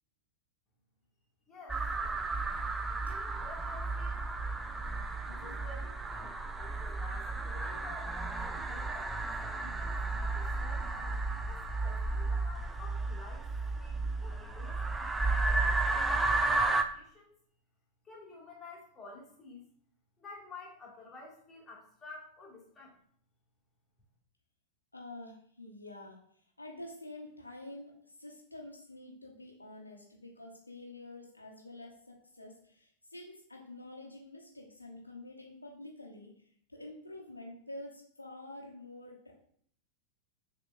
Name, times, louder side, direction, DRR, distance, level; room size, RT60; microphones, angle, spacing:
voice 1, 1.5-1.9 3.0-4.3 5.2-11.2 11.5-13.4 13.7-17.4 18.0-19.6 20.2-23.0, left 3 dB, 15° left, -3 dB, 1.4 m, -51 dB
sound 1, 1.7-16.8, right 3 dB, 10° right, 0.4 m, -33 dB
voice 2, 24.9-36.3 36.7-39.3, left 2 dB, 85° left, 0 dB, 0.7 m, -48 dB
6.6 x 2.9 x 2.3 m, 0.62 s
figure-of-eight pair, 90°, 0 cm